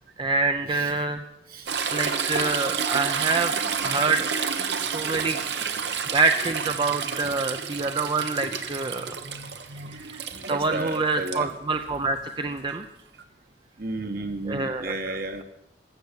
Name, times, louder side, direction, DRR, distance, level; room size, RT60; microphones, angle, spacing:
voice 1, 0.2-1.2 1.9-3.5 3.8-4.3 4.8-5.4 6.1-9.2 9.9-10.2 10.5-12.8 14.5-15.4, right 3 dB, 30° right, 7 dB, 0.6 m, -26 dB
Toilet flush / Trickle dribble, 1.7-11.4 13.2-13.3, right 6 dB, 75° right, 1.2 m, -30 dB
voice 2, 9.2-10.0 10.5-11.5 13.8-15.4, right 2 dB, 55° right, 6 dB, 1.5 m, -33 dB
14.5 x 7.1 x 9.9 m, 0.87 s
head